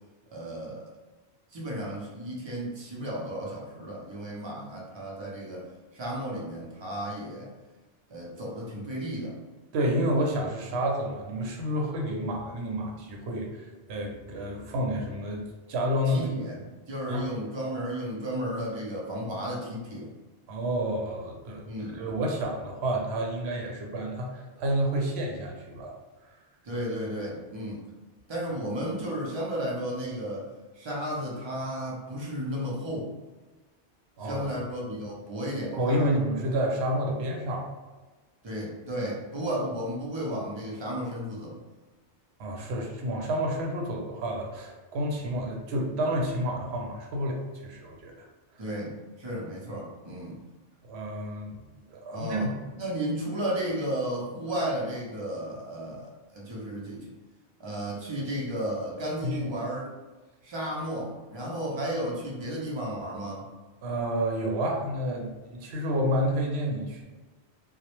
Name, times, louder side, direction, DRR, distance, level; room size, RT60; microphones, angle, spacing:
voice 1, 0.3-0.9 1.5-7.5 8.1-9.4 16.1-20.1 21.6-22.0 26.6-27.9 28.3-30.5 30.7-33.1 34.2-36.2 38.4-41.6 48.6-50.4 52.1-52.5 52.8-57.1 57.6-59.9 60.4-63.5, equal, 40° right, -3 dB, 0.4 m, -33 dB
voice 2, 9.7-13.6 13.9-15.4 15.7-16.3 17.1-17.2 20.5-21.7 21.9-25.9 34.2-34.4 35.7-37.7 42.4-48.1 50.8-51.6 51.9-52.5 59.2-59.5 63.8-67.0, equal, 75° right, 0 dB, 0.8 m, -29 dB
2.2 x 2.0 x 2.9 m, 1.2 s
omnidirectional pair, 1.1 m